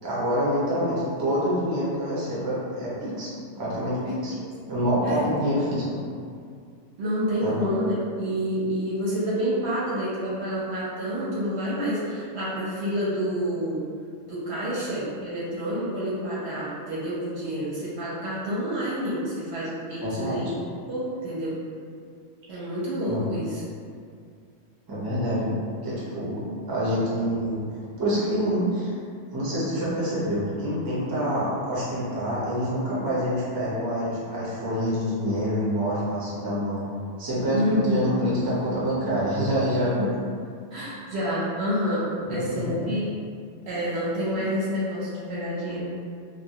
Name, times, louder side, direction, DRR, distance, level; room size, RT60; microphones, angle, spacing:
voice 1, 0.0-3.3 3.6-4.4 4.7-6.0 7.4-7.7 20.0-20.4 23.1-23.4 24.9-25.5 25.8-27.6 28.0-28.9 29.3-36.8 37.2-40.1 42.3-42.8 44.3-44.4, equal, 30° right, -9 dB, 0.4 m, -26 dB
voice 2, 4.1-4.4 5.0-5.2 7.0-13.8 14.3-20.5 20.9-21.6 22.5-23.6 37.5-38.1 39.8-40.1 40.7-43.1 43.7-45.8, equal, 65° right, -7 dB, 0.8 m, -28 dB
2.2 x 2.1 x 2.7 m, 2.2 s
omnidirectional pair, 1.3 m